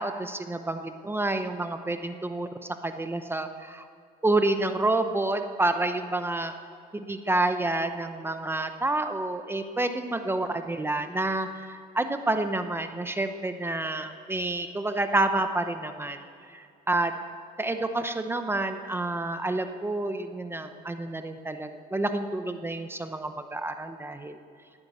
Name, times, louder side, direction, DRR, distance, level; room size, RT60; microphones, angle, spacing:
voice 1, 0.0-2.5 2.8-3.8 4.2-6.5 6.9-16.2 16.5-17.1 17.6-24.4, right 2 dB, 15° right, 8 dB, 0.8 m, -29 dB
15.5 x 9.7 x 8.2 m, 2.4 s
cardioid pair, 110°, 17 cm